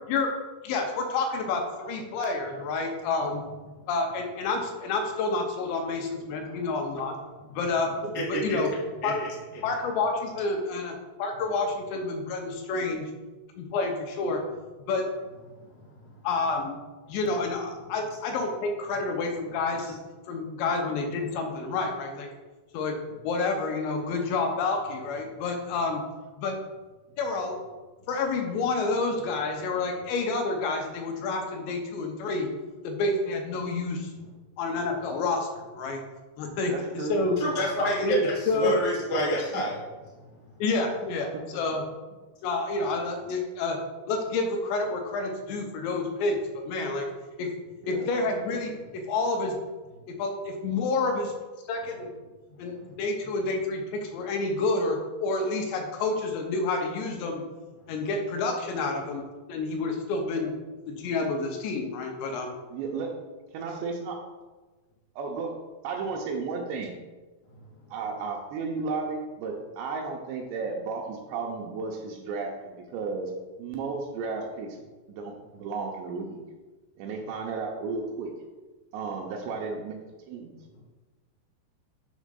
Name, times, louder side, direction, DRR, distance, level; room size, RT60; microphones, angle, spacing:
voice 1, 0.6-3.4 3.9-7.2 7.5-8.0 8.3-8.7 9.0-9.2 9.6-13.1 13.5-14.4 14.9-15.1 16.2-16.7 17.1-20.0 20.3-22.3 22.7-26.0 26.4-26.6 27.2-27.6 28.1-32.5 32.8-34.1 34.6-36.0 36.4-37.4 38.0-38.2 38.5-38.7 40.6-41.8 42.4-43.8 44.1-47.1 47.4-47.5 47.9-49.6 50.1-51.3 51.7-52.1 52.6-57.4 57.9-59.2 59.5-60.5 60.9-62.5, left 3 dB, 80° left, 4 dB, 2.9 m, -29 dB
voice 2, 36.7-37.4 47.8-48.1 62.7-63.1 63.5-64.1 65.2-65.5 65.8-66.9 67.9-73.3 73.6-74.7 75.1-76.4 77.0-78.3 78.9-80.0 80.3-80.6, right 4 dB, 85° right, 1 dB, 2.7 m, -33 dB
voice 3, 37.4-39.8, equal, 45° left, -5 dB, 1.1 m, -28 dB
7.3 x 5.9 x 3.8 m, 1.2 s
omnidirectional pair, 5.4 m